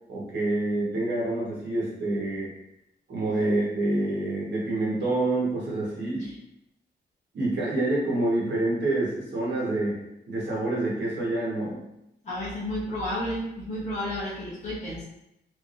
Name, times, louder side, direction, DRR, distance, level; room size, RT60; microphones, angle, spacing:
voice 1, 0.1-2.5 3.1-6.3 7.3-10.0 10.3-11.8, right 2 dB, 80° right, -5 dB, 1.4 m, -27 dB
voice 2, 12.2-15.1, left 1 dB, 40° left, -9 dB, 1.2 m, -32 dB
3.4 x 3.4 x 2.6 m, 0.83 s
wide cardioid pair, 160°, 18 cm